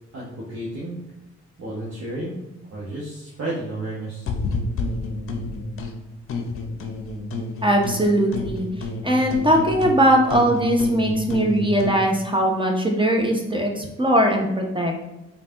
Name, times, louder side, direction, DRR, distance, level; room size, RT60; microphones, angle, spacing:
voice 1, 0.1-1.0 1.6-2.4 2.7-4.3, right 1 dB, 45° right, -6 dB, 1.1 m, -32 dB
sound 1, 4.2-5.9 6.3-8.0 8.3-12.0, left 3 dB, 40° left, 0.7 m, -30 dB
voice 2, 7.6-8.7 9.0-14.9, right 1 dB, 15° right, 1 dB, 0.8 m, -20 dB
5.1 x 2.4 x 2.9 m, 0.96 s
figure-of-eight pair, 40°, 33 cm